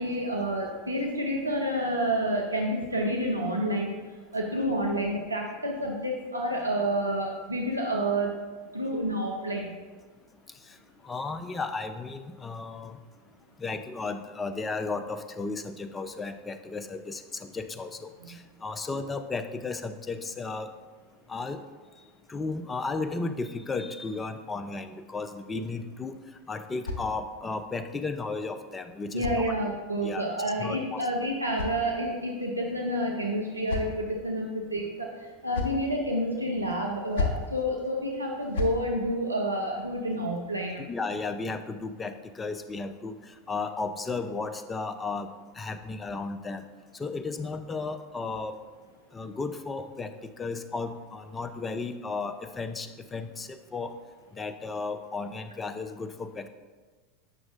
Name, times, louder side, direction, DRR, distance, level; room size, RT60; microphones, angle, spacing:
voice 1, 0.0-3.9 4.3-8.4 8.7-9.7 29.1-35.1 35.4-40.8, equal, 85° right, 0 dB, 0.6 m, -29 dB
voice 2, 11.0-13.0 13.6-20.7 21.3-21.6 22.3-26.2 26.5-29.5 30.0-30.2 30.6-31.1 40.9-43.1 43.5-45.3 45.6-46.6 46.9-48.5 49.1-50.1 50.4-53.9 54.3-56.5, left 3 dB, 20° left, 9 dB, 0.5 m, -34 dB
sound 1, 26.0-27.6 28.6-30.0 31.0-32.4 33.2-34.2 35.2-35.9 36.9-37.5 38.3-38.8, left 3 dB, 60° left, 0.9 m, -36 dB
8.6 x 6.0 x 2.5 m, 1.4 s
figure-of-eight pair, 85°, 0 cm